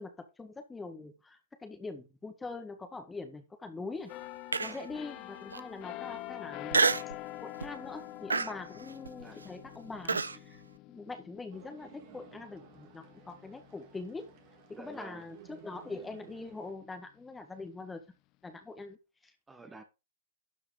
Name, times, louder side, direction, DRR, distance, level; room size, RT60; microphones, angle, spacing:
voice 1, 0.0-4.1 4.6-6.8 7.4-10.6 10.9-14.2 14.7-18.0 18.4-19.0 19.2-19.3, left 3 dB, 10° left, 1.6 m, -43 dB
sound 1, 4.1-15.6 16.1-16.3, left 17 dB, 40° left, 0.7 m, -46 dB
Human voice, 4.5-5.0 5.5-5.6 6.7-7.2 7.6-7.9 8.3-10.4, right 4 dB, 85° right, 0.6 m, -29 dB
sound 2, 11.5-16.7, right 10 dB, 50° right, 2.1 m, -56 dB
voice 2, 14.7-15.3 19.5-19.8, right 3 dB, 10° right, 1.5 m, -49 dB
12.5 x 4.7 x 5.0 m
figure-of-eight pair, 105°, 0 cm